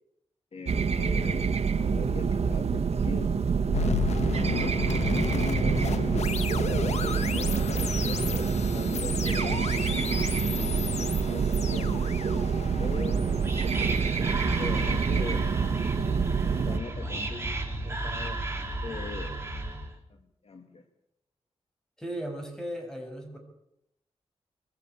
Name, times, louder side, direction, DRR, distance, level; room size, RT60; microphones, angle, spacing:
voice 1, 0.5-3.4 4.3-10.2 10.5-12.0 12.8-13.2 14.6-15.4 16.5-19.4 20.1-20.8, left 4 dB, 60° left, 6 dB, 2.4 m, -41 dB
sound 1, 0.7-16.8, right 5 dB, 70° right, 1.5 m, -27 dB
sound 2, 3.7-14.8, left 5 dB, 85° left, 1.6 m, -33 dB
Whispering, 13.0-20.0, right 2 dB, 25° right, 3.6 m, -33 dB
voice 2, 22.0-23.4, right 1 dB, 5° left, 3 dB, 6.5 m, -36 dB
23.0 x 14.5 x 8.3 m, 0.79 s
wide cardioid pair, 110°, 11 cm